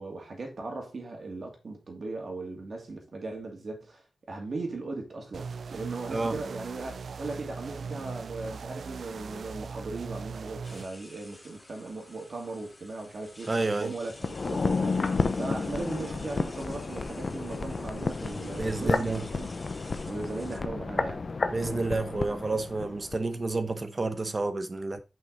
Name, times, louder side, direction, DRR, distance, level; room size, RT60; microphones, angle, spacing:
voice 1, 0.0-4.0 4.3-13.5 13.8-15.0 15.4-19.5 20.0-21.2, right 3 dB, 55° right, 2.5 m, -38 dB
sound 1, 5.3-10.9, right 5 dB, 75° right, 0.3 m, -39 dB
sound 2, 10.6-20.6, left 1 dB, 20° left, 2.1 m, -51 dB
voice 2, 13.5-13.9 18.5-19.2 21.5-25.0, right 3 dB, 35° right, 0.9 m, -30 dB
sound 3, 14.2-23.2 23.5-23.6, left 4 dB, 50° left, 0.8 m, -31 dB
6.3 x 5.6 x 3.8 m
wide cardioid pair, 95°, 0 cm